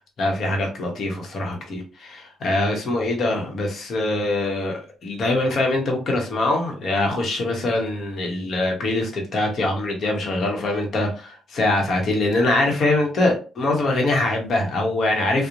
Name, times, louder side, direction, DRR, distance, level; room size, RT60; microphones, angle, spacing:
voice 1, 0.2-15.5, left 2 dB, 55° left, 1 dB, 0.9 m, -23 dB
2.8 x 2.1 x 2.5 m, 0.34 s
cardioid pair, 90°, 0 cm